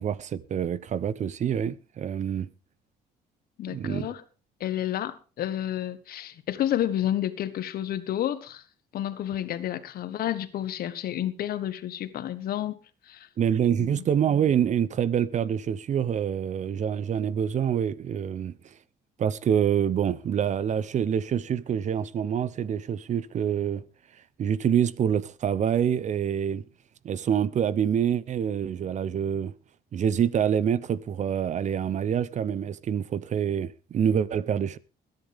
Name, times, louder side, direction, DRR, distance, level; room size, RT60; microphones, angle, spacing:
voice 1, 0.0-2.5 3.7-4.1 13.4-18.5 19.2-23.8 24.4-26.6 27.0-29.5 29.9-34.8, right 8 dB, 45° right, 0.8 m, -26 dB
voice 2, 3.6-4.2 4.6-8.6 8.9-12.8 13.1-13.3 13.8-14.0, left 11 dB, 65° left, 1.5 m, -30 dB
21.0 x 10.5 x 3.6 m
cardioid pair, 110°, 17 cm